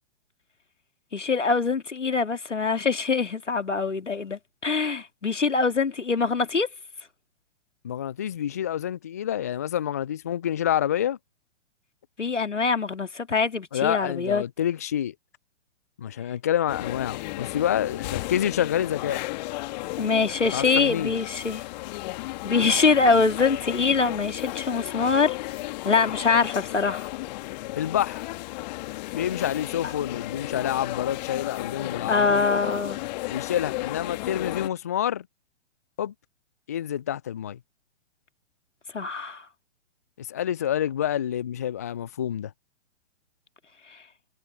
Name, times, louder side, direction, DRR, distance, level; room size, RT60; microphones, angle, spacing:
voice 1, 1.1-6.7 12.2-14.4 20.0-21.6 22.4-25.4 25.8-27.1 32.1-33.0 38.9-39.4, left 4 dB, 80° left, 2.1 m, -24 dB
voice 2, 7.8-11.2 13.7-15.1 16.0-19.2 20.5-21.1 27.8-28.3 29.1-32.3 33.3-35.3 36.0-36.1 36.7-37.6 40.2-42.5, left 10 dB, 15° left, 0.3 m, -28 dB
sound 1, 16.7-34.7, left 20 dB, 35° left, 2.0 m, -34 dB
figure-of-eight pair, 120°, 36 cm